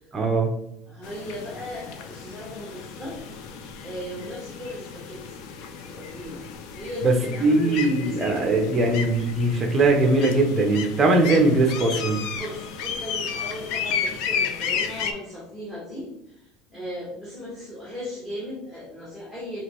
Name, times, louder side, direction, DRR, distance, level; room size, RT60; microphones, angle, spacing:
voice 1, 0.1-0.5 7.0-7.1 7.4-12.2, right 2 dB, 15° right, 3 dB, 0.6 m, -20 dB
voice 2, 0.8-3.2 3.6-5.4 5.6-6.4 6.7-8.4 12.3-19.6, equal, 10° left, -7 dB, 1.0 m, -37 dB
sound 1, 1.0-15.1, left 6 dB, 50° left, 0.4 m, -33 dB
4.9 x 2.9 x 3.0 m, 0.84 s
cardioid pair, 180°, 0 cm